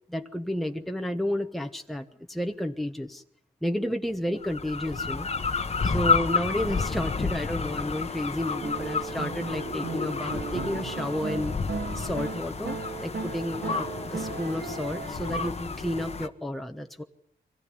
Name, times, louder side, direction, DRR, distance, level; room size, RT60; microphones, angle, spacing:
voice 1, 0.1-3.2 3.6-5.3 5.8-11.5 11.9-17.0, left 1 dB, ahead, 5 dB, 1.1 m, -31 dB
sound 1, 4.4-16.3, left 4 dB, 40° left, 1.2 m, -31 dB
sound 2, 8.6-15.5, right 5 dB, 80° right, 3.2 m, -36 dB
24.0 x 16.0 x 9.6 m, 0.73 s
cardioid pair, 85°, 17 cm